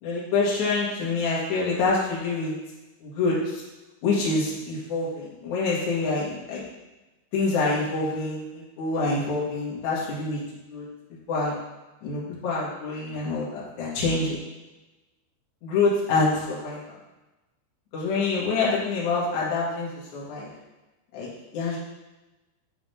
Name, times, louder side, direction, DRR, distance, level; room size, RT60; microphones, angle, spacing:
voice 1, 0.0-2.5 3.0-3.6 4.0-6.6 7.3-10.4 10.7-10.9 11.3-11.5 12.0-14.4 15.6-16.8 17.9-20.5 21.1-21.8, left 3 dB, 65° left, -6 dB, 1.9 m, -26 dB
9.0 x 4.0 x 3.4 m, 1.1 s
omnidirectional pair, 5.8 m